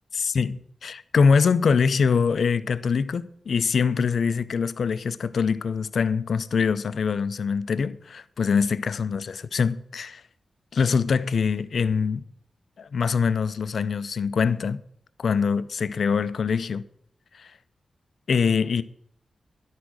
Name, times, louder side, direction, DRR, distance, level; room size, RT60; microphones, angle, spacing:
voice 1, 0.1-10.2 10.7-12.2 12.8-14.8 15.2-16.8 17.3-17.5 18.3-18.8, left 5 dB, 70° left, 0.5 m, -24 dB
11.5 x 8.4 x 6.3 m
wide cardioid pair, 105°, 0 cm